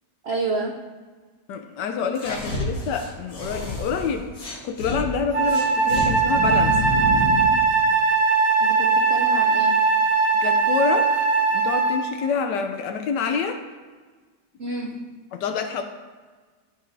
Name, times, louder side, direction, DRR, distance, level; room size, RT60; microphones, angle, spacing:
voice 1, 0.2-0.8 8.6-9.9 14.6-15.2, right 2 dB, 70° right, 1 dB, 0.6 m, -30 dB
voice 2, 1.5-4.3 4.6-6.8 10.4-11.1 11.5-13.6 15.3-15.8, left 6 dB, 80° left, 5 dB, 1.2 m, -27 dB
sound 1, 2.2-5.0 5.5-7.6, left 2 dB, 60° left, 1.9 m, -29 dB
Wind instrument woodwind instrument, 5.3-12.1, right 4 dB, 90° right, 2.1 m, -20 dB
13.0 x 4.8 x 2.6 m, 1.4 s
omnidirectional pair, 1.8 m